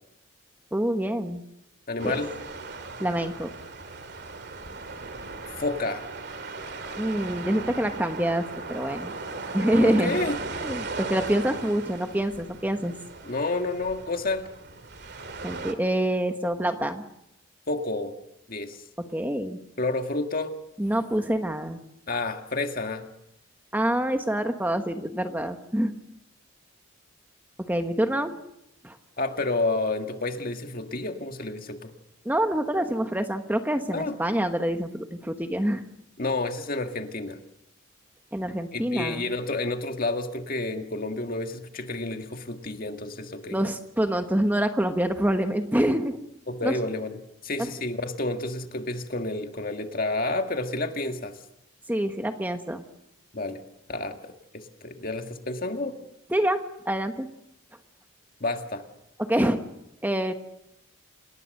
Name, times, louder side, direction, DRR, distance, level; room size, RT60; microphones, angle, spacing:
voice 1, 0.7-1.4 2.0-2.2 3.0-3.5 7.0-9.1 9.5-10.2 10.6-12.9 15.4-17.0 19.1-19.6 20.8-21.8 23.7-25.9 27.7-28.3 28.8-29.0 32.2-35.8 38.3-39.2 43.5-46.2 46.6-46.7 51.9-52.8 56.3-56.6 56.8-57.3 59.3-59.6 60.0-60.3, right 1 dB, 10° right, 7 dB, 1.1 m, -26 dB
voice 2, 1.9-2.3 5.6-6.1 9.8-10.4 13.2-14.5 17.7-18.2 18.5-18.8 19.8-20.5 22.1-23.1 29.2-31.9 33.9-34.2 36.2-37.4 38.7-43.6 46.5-47.2 47.4-51.4 53.3-53.6 53.9-56.0 58.4-58.8, left 2 dB, 45° left, 6 dB, 1.9 m, -30 dB
sound 1, 2.0-15.7, right 3 dB, 55° right, 2.5 m, -37 dB
28.0 x 19.5 x 6.6 m, 0.83 s
head